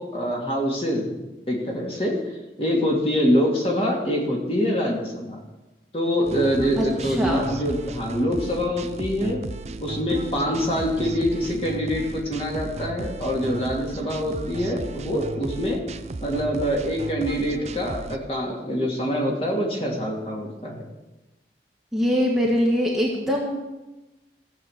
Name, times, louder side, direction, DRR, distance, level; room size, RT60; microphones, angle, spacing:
voice 1, 0.0-2.1 2.6-5.4 5.9-9.4 9.8-15.8 16.2-20.8, equal, 35° left, -2 dB, 2.6 m, -25 dB
sound 1, 6.2-18.2, right 2 dB, 35° right, 0.5 m, -35 dB
voice 2, 6.8-7.5 21.9-23.6, equal, ahead, -3 dB, 1.5 m, -23 dB
14.5 x 7.7 x 6.6 m, 1.0 s
head